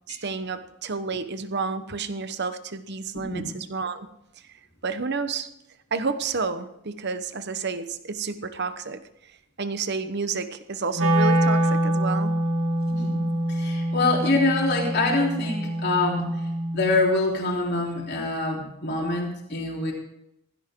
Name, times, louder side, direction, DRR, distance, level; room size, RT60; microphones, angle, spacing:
voice 1, 0.1-4.1 4.8-5.5 5.9-9.0 9.6-12.4, right 4 dB, 50° right, 11 dB, 1.0 m, -30 dB
Wind instrument woodwind instrument, 10.9-17.0, right 1 dB, 65° right, 2.0 m, -25 dB
voice 2, 12.9-13.2 13.5-16.5 16.7-19.9, left 2 dB, 50° left, -2 dB, 3.6 m, -25 dB
17.0 x 15.5 x 3.8 m, 0.82 s
head